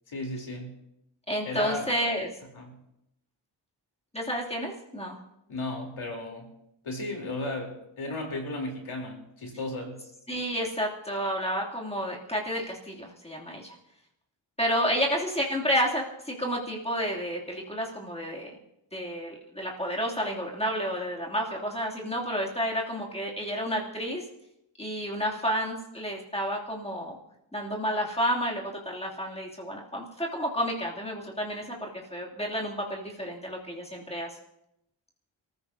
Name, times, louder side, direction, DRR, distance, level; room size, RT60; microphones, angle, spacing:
voice 1, 0.1-0.8 1.5-1.9 2.5-2.8 5.5-6.5 6.8-10.0, left 2 dB, 85° left, 1 dB, 3.7 m, -35 dB
voice 2, 1.3-2.3 4.1-5.2 10.3-13.7 14.6-18.5 18.9-24.2 24.8-27.2 27.5-34.3, equal, 15° left, -3 dB, 2.8 m, -30 dB
29.0 x 15.0 x 2.8 m, 0.83 s
wide cardioid pair, 135°, 47 cm